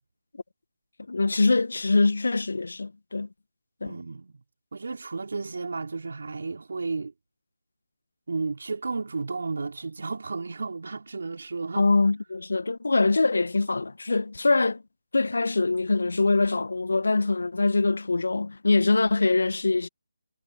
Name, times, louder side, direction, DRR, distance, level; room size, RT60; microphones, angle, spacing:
voice 1, 1.1-3.3 3.8-3.9 11.8-14.8 15.1-19.9, left 3 dB, 65° left, 1.6 m, -23 dB
voice 2, 3.8-4.4 4.7-7.1 8.3-11.9, right 4 dB, 60° right, 5.2 m, -33 dB
figure-of-eight pair, 150°, 0 cm